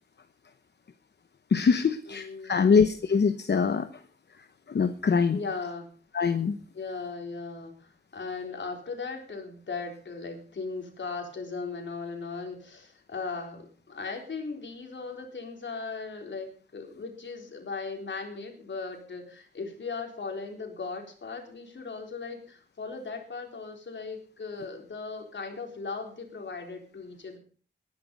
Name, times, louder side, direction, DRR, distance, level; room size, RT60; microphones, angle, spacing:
voice 1, 1.5-4.0 4.7-5.4 6.1-6.6, left 5 dB, 65° left, 9 dB, 0.9 m, -23 dB
voice 2, 2.1-2.8 5.3-5.9 6.7-27.4, left 4 dB, 85° left, 2 dB, 3.9 m, -38 dB
19.5 x 10.5 x 5.3 m, 0.43 s
wide cardioid pair, 125°, 19 cm